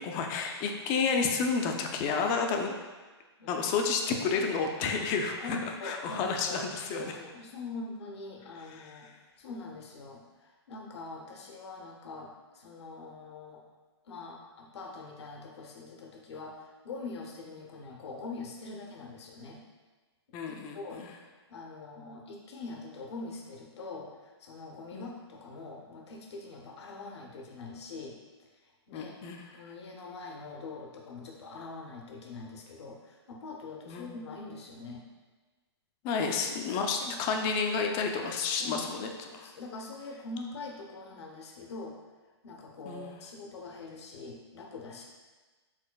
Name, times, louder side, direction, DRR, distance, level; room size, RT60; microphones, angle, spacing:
voice 1, 0.0-2.7 3.5-7.1 8.8-8.9 20.3-21.1 24.9-25.1 28.9-29.4 33.9-34.0 36.0-39.1 39.3-39.5 42.8-43.1, left 5 dB, 30° left, 3 dB, 0.4 m, -30 dB
voice 2, 5.4-9.1 9.4-13.6 14.0-19.6 20.5-21.0 21.5-28.2 28.5-29.2 29.5-35.0 36.1-36.2 37.0-37.2 38.6-38.9 39.2-42.0 42.4-45.1, left 3 dB, 70° left, 1 dB, 0.7 m, -43 dB
4.8 x 3.7 x 2.2 m, 1.3 s
hypercardioid pair, 130°, 15 cm